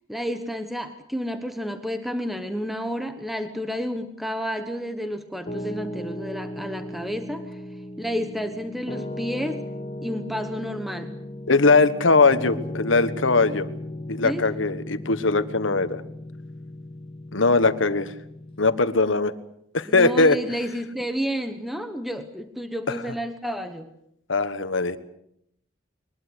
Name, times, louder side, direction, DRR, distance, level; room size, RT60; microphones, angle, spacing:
voice 1, 0.1-7.6 8.0-9.6 10.0-11.1 14.2-14.5 19.8-23.9, equal, ahead, 8 dB, 1.2 m, -31 dB
Piano, 5.5-18.8, left 1 dB, 30° left, 1.5 m, -36 dB
voice 2, 11.5-13.7 14.1-16.0 17.3-18.2 18.6-19.3 19.7-20.4 22.9-23.0 24.3-25.0, left 3 dB, 75° left, 12 dB, 1.4 m, -20 dB
22.5 x 21.0 x 8.1 m, 0.73 s
head